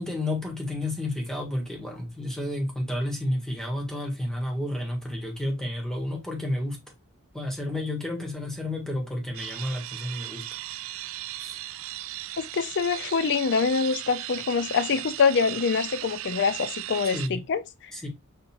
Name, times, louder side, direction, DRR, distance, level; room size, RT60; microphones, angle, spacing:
voice 1, 0.0-6.8 7.3-10.4 11.4-11.6 17.1-17.4 17.9-18.1, left 1 dB, 5° left, 1.5 m, -31 dB
sound 1, 9.3-17.3, right 15 dB, 70° right, 0.3 m, -37 dB
voice 2, 12.4-17.6, left 5 dB, 55° left, 0.4 m, -25 dB
5.2 x 4.4 x 2.3 m
head